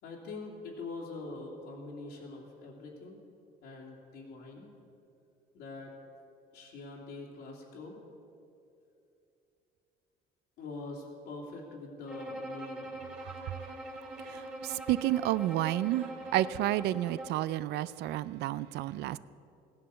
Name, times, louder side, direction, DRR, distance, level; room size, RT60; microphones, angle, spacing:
voice 1, 0.0-3.2 3.6-4.7 5.5-5.9 6.5-8.0 10.6-13.0, left 3 dB, 85° left, 2.7 m, -44 dB
Bowed string instrument, 12.1-17.5, right 2 dB, 5° right, 2.0 m, -43 dB
voice 2, 13.2-13.7 14.0-19.2, right 14 dB, 80° right, 0.5 m, -31 dB
15.5 x 10.5 x 6.9 m
cardioid pair, 110°, 17 cm